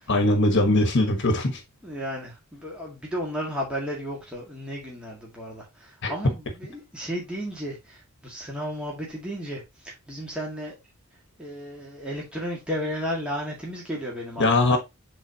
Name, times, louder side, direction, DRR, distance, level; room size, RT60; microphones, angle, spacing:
voice 1, 0.1-1.6 6.0-6.1 14.4-14.8, left 2 dB, 55° left, 1.3 m, -21 dB
voice 2, 1.8-10.7 11.4-14.8, equal, 5° right, 1.8 m, -33 dB
8.9 x 4.0 x 2.8 m
head